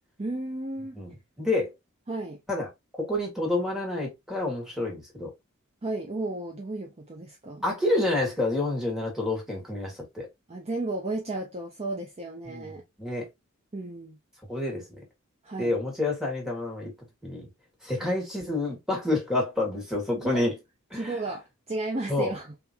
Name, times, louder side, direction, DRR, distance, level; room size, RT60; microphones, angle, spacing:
voice 1, 0.2-1.0 2.1-2.4 5.8-7.6 10.5-12.8 13.7-14.2 15.4-15.7 18.0-18.1 20.2-20.4 20.9-22.5, right 2 dB, 30° right, 0.6 m, -33 dB
voice 2, 1.4-1.7 2.5-2.7 3.0-5.3 7.6-10.3 12.4-13.3 14.5-15.0 15.6-16.9 17.2-17.5 17.8-20.5 20.9-21.1 22.1-22.3, left 2 dB, 5° right, 1.6 m, -28 dB
3.5 x 2.9 x 2.6 m
head